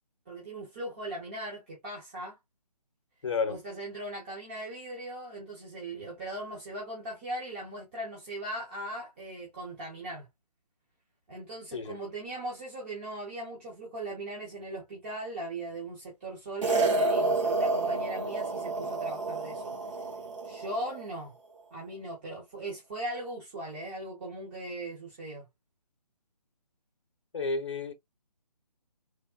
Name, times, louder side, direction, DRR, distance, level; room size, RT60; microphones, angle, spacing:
voice 1, 0.3-2.4 3.5-10.3 11.3-19.7 20.4-21.3 21.7-25.5, right 1 dB, 15° right, 0.7 m, -39 dB
voice 2, 3.2-3.6 11.7-12.0 27.3-27.9, left 4 dB, 45° left, 0.7 m, -31 dB
sound 1, 16.6-21.1, right 3 dB, 50° right, 1.2 m, -29 dB
3.5 x 2.1 x 2.3 m
figure-of-eight pair, 150°, 21 cm